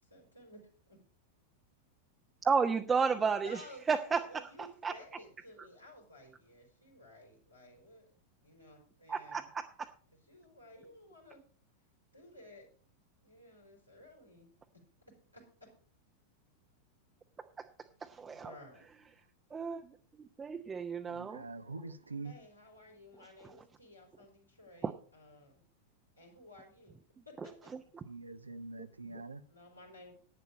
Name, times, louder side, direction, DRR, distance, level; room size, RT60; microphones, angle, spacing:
voice 1, 0.0-1.0 3.4-8.0 8.4-9.5 10.3-11.4 12.1-12.7 13.2-14.5 15.3-15.4 18.3-18.9 22.2-25.6 26.2-27.5 29.5-30.1, left 1 dB, 90° left, 3.9 m, -55 dB
voice 2, 2.4-3.6 3.9-4.5 4.8-4.9 9.1-9.9 17.6-17.7 18.0-18.5 19.5-21.4 23.4-23.6 24.8-24.9 27.7-27.8, right 5 dB, 15° right, 0.7 m, -33 dB
voice 3, 21.1-22.4 28.0-29.4, right 3 dB, 80° right, 0.7 m, -44 dB
11.0 x 9.5 x 5.0 m
figure-of-eight pair, 90°, 0 cm